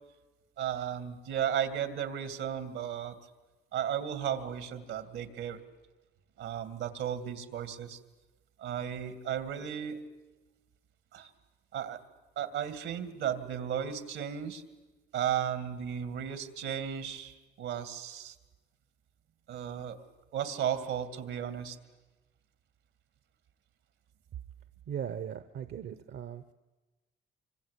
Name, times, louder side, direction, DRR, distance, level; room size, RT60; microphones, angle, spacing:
voice 1, 0.6-3.1 3.7-5.6 6.4-8.0 8.6-10.0 11.1-11.3 11.7-12.0 12.4-14.6 15.1-18.3 19.5-20.0 20.3-21.8, right 9 dB, 85° right, 10 dB, 2.4 m, -34 dB
voice 2, 24.9-26.4, right 9 dB, 70° right, 11 dB, 1.0 m, -38 dB
26.0 x 25.0 x 8.4 m, 1.2 s
cardioid pair, 90°, 20 cm